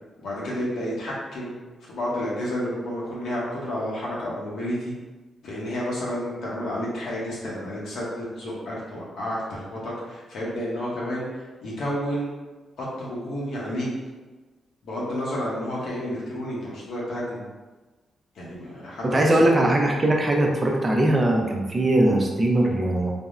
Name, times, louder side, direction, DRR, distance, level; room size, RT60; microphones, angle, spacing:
voice 1, 0.2-1.5 1.8-4.9 5.4-12.3 12.8-13.9 14.8-17.4 18.3-19.5, equal, 80° left, -6 dB, 0.7 m, -30 dB
voice 2, 19.0-23.1, right 1 dB, 30° right, 0 dB, 0.5 m, -20 dB
3.4 x 2.0 x 2.4 m, 1.2 s
cardioid pair, 80°, 0 cm